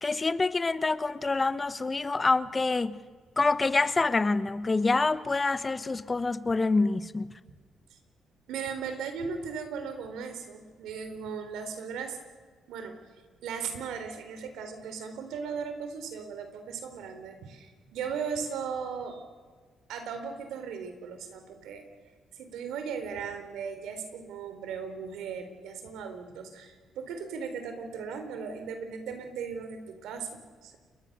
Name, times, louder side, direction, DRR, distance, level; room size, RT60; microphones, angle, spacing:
voice 1, 0.0-3.0 3.4-7.4, left 3 dB, 25° left, 1.0 m, -26 dB
voice 2, 8.5-12.2 12.7-13.0 13.4-19.2 19.9-21.8 22.4-30.8, right 6 dB, 85° right, 3.9 m, -37 dB
28.5 x 22.0 x 6.8 m
cardioid pair, 90°, 0 cm